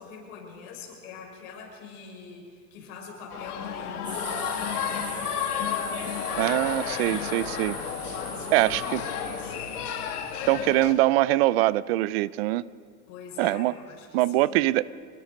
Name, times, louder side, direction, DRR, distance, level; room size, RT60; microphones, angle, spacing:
voice 1, 0.0-5.4 8.0-9.9 13.1-14.6, left 5 dB, 60° left, 0 dB, 6.4 m, -42 dB
sound 1, 3.3-10.9, left 8 dB, 80° left, 2.5 m, -32 dB
sound 2, 4.0-10.7, right 2 dB, 10° right, 2.9 m, -41 dB
voice 2, 6.4-7.8 8.5-9.0 10.5-12.7 13.4-13.7 14.1-14.9, right 17 dB, 45° right, 20 dB, 0.5 m, -23 dB
26.5 x 21.0 x 5.3 m, 2.1 s
supercardioid pair, 150°, 45 cm